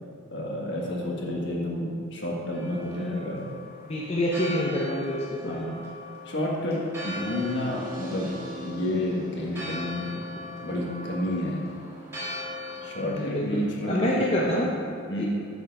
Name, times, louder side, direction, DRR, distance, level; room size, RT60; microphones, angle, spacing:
voice 1, 0.3-3.5 5.4-5.8 6.2-6.8 7.0-8.3 8.6-10.1 10.6-11.6 12.8-14.1 14.5-14.7 15.1-15.3, left 1 dB, 60° left, -2 dB, 1.5 m, -30 dB
Church bell, 2.5-13.1, left 2 dB, 15° right, 1.7 m, -40 dB
voice 2, 3.8-5.5 13.0-14.7 15.2-15.3, left 1 dB, 30° left, -4 dB, 0.7 m, -27 dB
sound 1, 7.0-13.0, right 1 dB, 40° right, 1.3 m, -44 dB
6.9 x 6.7 x 5.2 m, 2.5 s
head